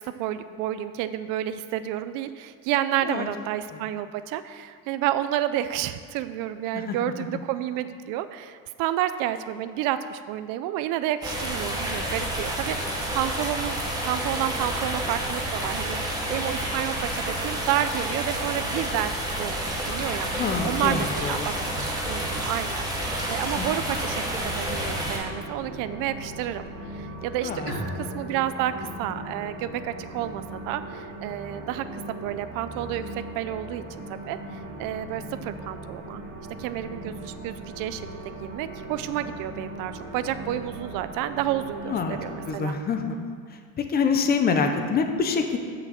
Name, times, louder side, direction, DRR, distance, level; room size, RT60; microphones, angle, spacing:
voice 1, 0.0-19.6 19.8-20.3 20.6-33.8 34.1-36.2 36.6-38.1 38.4-42.7, right 12 dB, 65° right, 12 dB, 0.5 m, -30 dB
voice 2, 6.7-7.4 20.3-21.9 23.6-23.7 27.4-27.7 41.8-42.2 42.5-43.3 43.8-45.6, left 5 dB, 25° left, 5 dB, 0.6 m, -26 dB
sound 1, 11.2-25.2, right 1 dB, 10° right, 1.2 m, -29 dB
sound 2, 24.0-42.5, right 1 dB, 45° right, 2.6 m, -39 dB
Bowed string instrument, 27.7-31.2, left 2 dB, 65° left, 2.5 m, -40 dB
6.6 x 6.0 x 7.5 m, 2.1 s
cardioid pair, 170°, 35 cm